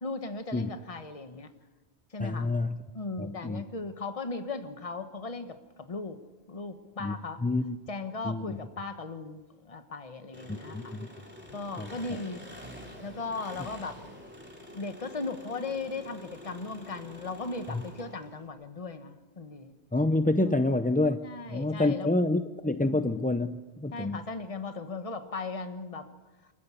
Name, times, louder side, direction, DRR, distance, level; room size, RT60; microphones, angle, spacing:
voice 1, 0.0-1.5 2.1-2.5 2.9-6.2 6.5-7.4 7.9-11.0 11.5-12.4 13.0-14.1 14.7-19.7 20.4-20.8 21.2-22.1 22.7-23.1 23.9-26.1, left 3 dB, 30° left, 8 dB, 1.3 m, -37 dB
voice 2, 2.2-2.8 3.2-3.6 7.0-7.1 7.4-7.8 8.2-8.6 10.5-11.1 11.8-11.9 17.7-17.8 19.9-21.2 21.5-24.2, left 2 dB, 10° left, 9 dB, 0.4 m, -28 dB
Engine, 10.3-18.5, left 1 dB, 10° right, 3.7 m, -47 dB
27.0 x 14.5 x 8.3 m, 1.2 s
omnidirectional pair, 1.1 m